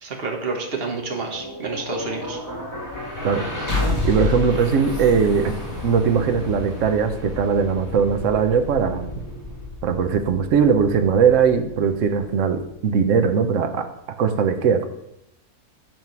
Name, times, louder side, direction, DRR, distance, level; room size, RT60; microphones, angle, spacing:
voice 1, 0.0-2.4, right 3 dB, 40° right, 1 dB, 1.3 m, -29 dB
sound 1, 0.7-12.8, left 2 dB, 25° left, 2.5 m, -31 dB
voice 2, 4.0-5.6 5.8-9.1 9.8-13.8 14.2-14.9, right 6 dB, 60° right, 7 dB, 1.0 m, -20 dB
9.0 x 3.6 x 5.9 m, 0.83 s
omnidirectional pair, 1.6 m